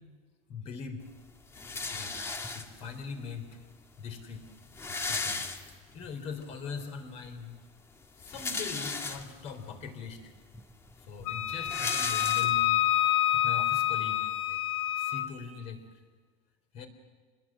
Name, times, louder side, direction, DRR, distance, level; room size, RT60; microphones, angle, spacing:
voice 1, 0.5-1.0 1.9-2.1 2.5-3.6 4.0-4.4 4.8-5.5 5.9-7.5 8.2-10.3 11.1-14.6 15.0-15.8 16.7-16.9, left 5 dB, 40° left, 6 dB, 3.7 m, -41 dB
sound 1, 1.5-3.0 3.8-3.9 4.1-4.2 4.5-6.1 6.5-6.6 8.0-9.5 10.2-10.3 10.5-12.9, left 3 dB, 15° left, 1.6 m, -36 dB
Wind instrument woodwind instrument, 11.3-15.3, left 13 dB, 90° left, 3.1 m, -27 dB
27.5 x 21.0 x 7.5 m, 1.5 s
supercardioid pair, 155°, 16 cm